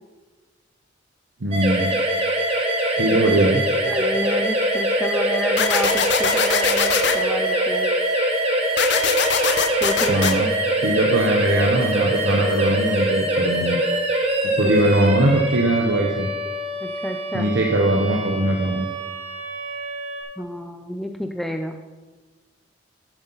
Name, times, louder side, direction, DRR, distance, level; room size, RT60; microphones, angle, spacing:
voice 1, 1.4-1.9 3.0-3.6 10.1-10.5 10.8-13.8 14.6-16.3 17.3-18.9, right 1 dB, 70° right, 1 dB, 0.9 m, -20 dB
sound 1, 1.5-20.2, right 1 dB, 35° right, 1.5 m, -23 dB
voice 2, 3.8-7.9 9.8-10.3 14.6-14.7 16.8-17.5 20.4-21.8, equal, ahead, 4 dB, 0.4 m, -30 dB
sound 2, 5.6-7.2 8.8-10.3, left 8 dB, 65° left, 0.7 m, -22 dB
11.0 x 7.9 x 4.0 m, 1.3 s
head